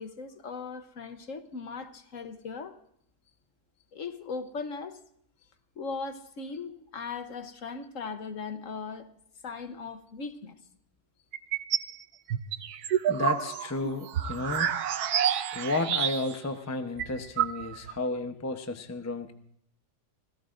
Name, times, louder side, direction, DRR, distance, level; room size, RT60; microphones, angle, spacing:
voice 1, 0.0-2.7 3.9-5.0 5.8-9.1 9.4-10.5, left 4 dB, 55° left, 1.3 m, -38 dB
sound 1, 11.3-11.9 12.3-16.5 16.7-16.8 17.0-18.0, right 9 dB, 70° right, 1.2 m, -29 dB
voice 2, 13.1-14.7 15.5-19.3, left 2 dB, 15° left, 0.6 m, -32 dB
26.0 x 17.0 x 2.6 m
omnidirectional pair, 1.8 m